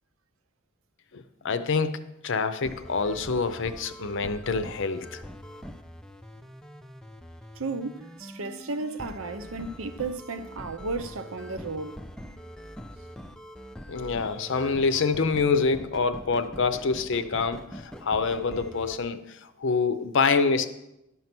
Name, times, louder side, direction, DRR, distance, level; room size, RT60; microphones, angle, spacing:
voice 1, 1.1-5.2 13.9-20.7, left 4 dB, 65° left, 0.6 m, -26 dB
sound 1, 2.6-19.0, equal, 5° left, 0.4 m, -43 dB
voice 2, 7.5-12.0, right 3 dB, 85° right, 0.7 m, -34 dB
11.5 x 5.5 x 6.0 m
head